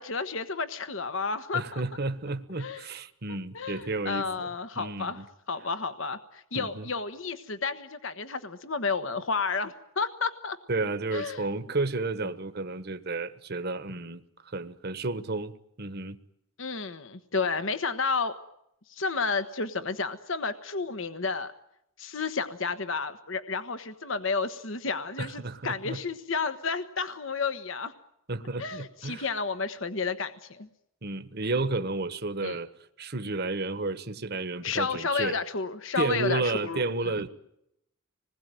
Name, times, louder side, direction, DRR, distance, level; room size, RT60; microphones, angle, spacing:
voice 1, 0.0-1.8 2.6-2.8 3.5-5.2 5.5-10.6 11.1-11.4 16.6-18.4 18.9-21.5 22.0-27.9 28.6-30.7 32.4-32.6 34.6-36.8, left 4 dB, 65° left, 1.3 m, -31 dB
voice 2, 1.5-4.5 4.8-5.2 6.5-6.9 10.7-16.2 25.2-26.0 28.3-29.3 31.0-32.7 33.0-35.4 36.0-37.3, right 3 dB, 50° right, 1.3 m, -32 dB
26.5 x 20.5 x 9.3 m
head